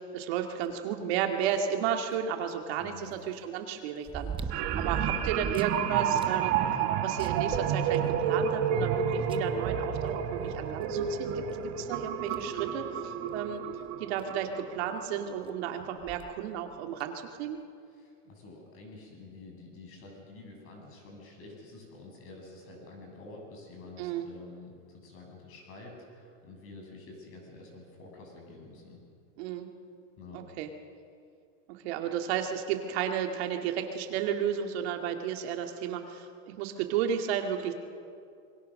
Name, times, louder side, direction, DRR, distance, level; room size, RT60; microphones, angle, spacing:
voice 1, 0.0-4.3 4.7-6.6 7.0-11.4 11.8-13.7 14.0-17.6 24.0-24.3 29.4-29.7 30.3-30.7 31.7-37.8, right 8 dB, 65° right, 4 dB, 2.2 m, -33 dB
sound 1, 2.1-2.2 4.1-5.8 6.2-6.3 6.7-6.8 7.2-8.3 9.3-9.4 10.8-10.9 11.5-11.6 12.3-12.5 13.9-14.0 14.2-14.3 16.0-16.3 17.0-17.1, right 5 dB, 15° right, 0.9 m, -37 dB
voice 2, 2.8-3.2 4.8-5.1 18.0-29.0 30.2-30.5, left 3 dB, 40° left, 1 dB, 7.5 m, -49 dB
sound 2, 4.5-15.3 15.6-15.8, right 8 dB, 45° right, 1.9 m, -30 dB
27.0 x 23.0 x 6.5 m, 2.3 s
supercardioid pair, 150°, 35 cm